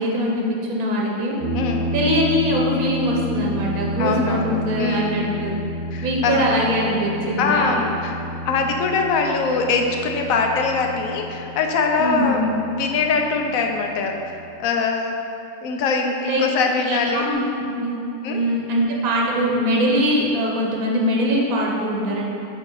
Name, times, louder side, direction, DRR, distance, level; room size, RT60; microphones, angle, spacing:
voice 1, 0.0-1.4 1.9-5.6 6.0-7.8 12.0-12.5 16.2-16.4 16.9-17.4 17.7-18.0 18.3-22.2, equal, 85° right, -2 dB, 1.3 m, -22 dB
sound 1, 1.4-14.5, equal, 60° right, 0.3 m, -30 dB
voice 2, 1.5-1.9 4.0-5.3 5.9-6.5 7.4-8.2 8.4-15.2 15.6-17.2 18.2-18.4, left 4 dB, 75° left, 3 dB, 1.0 m, -23 dB
8.0 x 2.8 x 4.6 m, 2.7 s
omnidirectional pair, 1.5 m